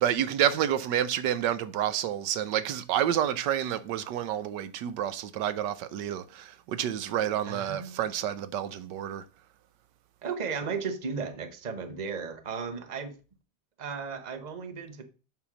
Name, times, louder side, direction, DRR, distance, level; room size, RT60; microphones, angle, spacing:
voice 1, 0.0-9.2, right 10 dB, 85° right, 1.4 m, -29 dB
voice 2, 7.4-7.9 10.2-13.1 13.8-15.0, right 5 dB, 30° right, 1.0 m, -35 dB
7.8 x 5.8 x 6.0 m
omnidirectional pair, 1.8 m